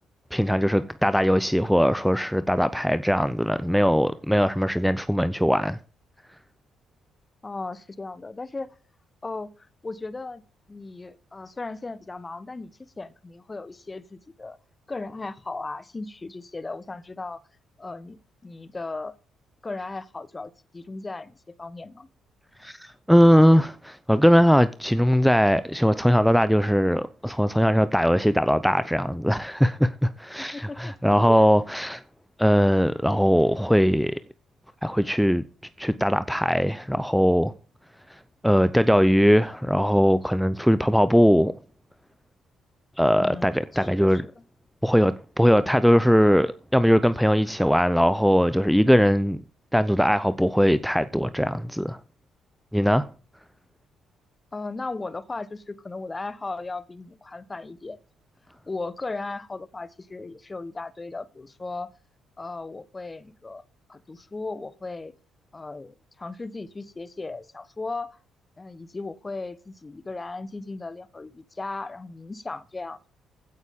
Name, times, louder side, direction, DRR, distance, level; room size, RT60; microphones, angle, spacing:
voice 1, 0.3-5.8 22.6-32.0 32.4-34.2 34.8-35.4 35.8-37.5 38.4-41.5 43.0-44.2 44.8-49.4 49.7-52.0 52.7-53.1, equal, ahead, 0.7 m, -20 dB
voice 2, 7.4-8.7 9.2-9.5 9.8-10.4 10.7-12.7 13.0-14.6 14.9-17.4 17.8-19.2 19.6-22.1 30.4-31.4 43.2-44.3 54.5-58.0 58.7-61.9 62.4-63.6 63.9-65.1 65.5-68.2 68.6-73.0, left 3 dB, 25° left, 1.1 m, -36 dB
15.5 x 9.4 x 3.7 m
figure-of-eight pair, 45°, 0 cm